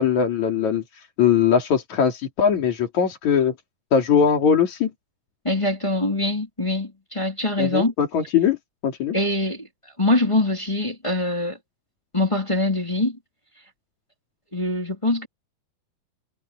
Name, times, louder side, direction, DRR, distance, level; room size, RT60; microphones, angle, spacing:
voice 1, 0.0-3.5 3.9-4.9 7.6-8.6 8.8-9.2, left 7 dB, 55° left, 4.2 m, -20 dB
voice 2, 5.4-7.9 9.1-9.7 10.0-11.6 12.1-13.2 14.5-15.3, left 2 dB, 10° left, 2.4 m, -23 dB
omnidirectional pair, 4.1 m